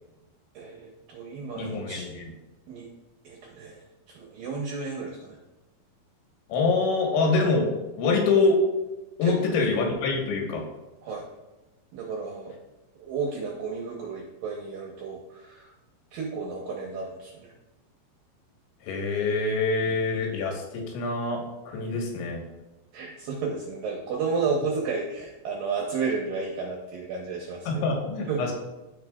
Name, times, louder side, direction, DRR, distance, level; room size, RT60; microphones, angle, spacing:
voice 1, 0.5-2.1 2.7-2.9 3.2-5.4 9.2-9.5 11.0-11.3 11.9-12.6 13.0-15.7 16.1-17.5 19.8-20.0 22.9-27.7 28.3-28.4, right 4 dB, 75° right, -1 dB, 2.1 m, -32 dB
voice 2, 1.6-2.3 6.5-7.7 8.0-8.6 9.2-10.6 18.8-22.4 27.7-28.5, left 3 dB, 85° left, 0 dB, 3.7 m, -25 dB
15.0 x 5.1 x 2.3 m, 1.0 s
omnidirectional pair, 5.2 m